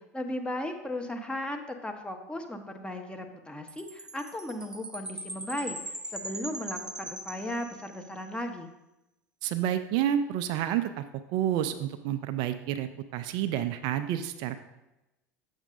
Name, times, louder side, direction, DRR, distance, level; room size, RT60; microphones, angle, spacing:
voice 1, 0.1-8.7, left 1 dB, 10° left, 4 dB, 1.0 m, -36 dB
Chime, 3.7-8.2, right 1 dB, 10° right, 0.6 m, -40 dB
voice 2, 9.4-11.0 11.3-14.6, right 11 dB, 55° right, 10 dB, 0.4 m, -29 dB
8.0 x 7.0 x 2.6 m, 0.95 s
hypercardioid pair, 80°, 9 cm